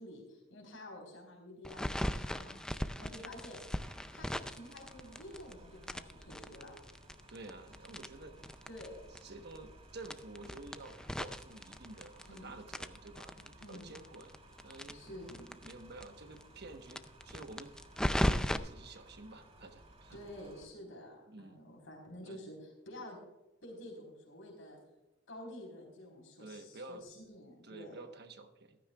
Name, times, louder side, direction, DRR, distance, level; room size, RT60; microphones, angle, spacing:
voice 1, 0.0-2.6 3.0-3.6 4.1-6.7 8.7-9.0 12.3-12.5 13.6-14.0 14.9-15.6 20.1-23.2 23.6-24.8 25.3-28.0, left 1 dB, 75° left, 0 dB, 4.2 m, -50 dB
sound 1, 1.6-5.5 5.8-8.9 9.2-9.3 9.5-9.6 10.0-12.4 12.7-15.7 16.0-16.1 16.4-16.5 16.9-18.6, equal, 5° left, 0.4 m, -37 dB
sound 2, 1.8-20.7, right 1 dB, 35° right, 2.7 m, -58 dB
voice 2, 3.0-3.3 7.3-8.4 9.2-14.3 14.6-15.2 15.6-17.7 18.3-20.2 21.3-21.6 22.2-22.4 26.4-27.1 27.6-28.8, right 2 dB, 55° right, 7 dB, 1.2 m, -50 dB
15.0 x 13.5 x 2.4 m, 0.98 s
head